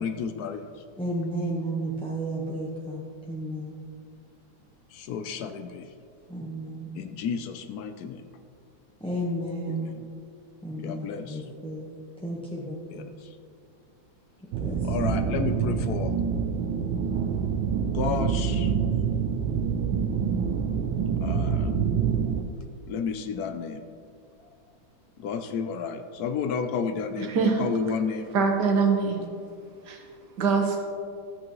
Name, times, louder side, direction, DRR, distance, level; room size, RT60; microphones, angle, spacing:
voice 1, 0.0-0.8 4.9-5.9 6.9-8.2 9.7-10.1 10.8-11.4 12.9-13.4 14.8-16.2 17.8-18.7 21.2-21.7 22.9-23.8 25.2-28.3, left 6 dB, 70° left, 8 dB, 0.9 m, -32 dB
voice 2, 1.0-3.8 6.3-7.0 9.0-10.0 10.6-11.9 12.2-13.1 14.6-15.1, right 1 dB, 5° left, -6 dB, 0.7 m, -33 dB
sound 1, 14.5-22.4, right 7 dB, 90° right, 1.4 m, -26 dB
voice 3, 27.2-27.7 28.3-29.3 29.9-30.0 30.4-30.8, right 5 dB, 65° right, 3 dB, 1.7 m, -23 dB
13.0 x 8.6 x 3.1 m, 2.3 s
omnidirectional pair, 2.1 m